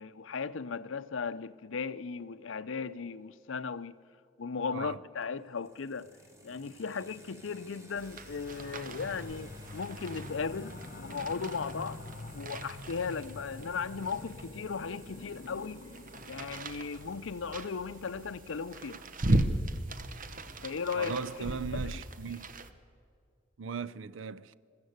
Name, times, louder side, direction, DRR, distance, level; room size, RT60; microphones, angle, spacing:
voice 1, 0.0-4.0 4.4-6.1 6.4-12.0 12.3-15.8 16.2-19.0 20.6-21.9, left 5 dB, 80° left, 0.6 m, -37 dB
sound 1, 5.2-22.0, equal, 15° right, 2.4 m, -57 dB
sound 2, 8.0-22.7, right 1 dB, 45° right, 1.0 m, -38 dB
sound 3, 8.3-18.8, left 2 dB, 45° left, 0.8 m, -47 dB
voice 2, 20.9-22.5 23.6-24.5, right 6 dB, 75° right, 0.5 m, -38 dB
21.5 x 15.0 x 8.0 m
head